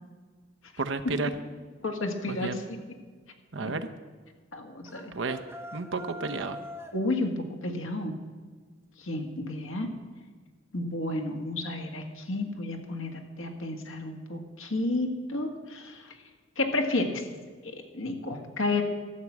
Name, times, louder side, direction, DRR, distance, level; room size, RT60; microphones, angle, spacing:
voice 1, 0.8-1.3 2.3-2.6 3.5-3.9 5.1-5.4 5.7-6.6, right 3 dB, 70° right, 9 dB, 0.8 m, -31 dB
voice 2, 1.8-2.8 3.6-3.7 4.5-5.1 6.9-8.1 9.0-9.9 10.7-16.2 16.6-17.2 17.6-18.8, left 2 dB, 90° left, 3 dB, 1.7 m, -31 dB
sound 1, 4.9-7.0, left 1 dB, 10° right, 0.7 m, -43 dB
12.5 x 7.6 x 7.2 m, 1.5 s
head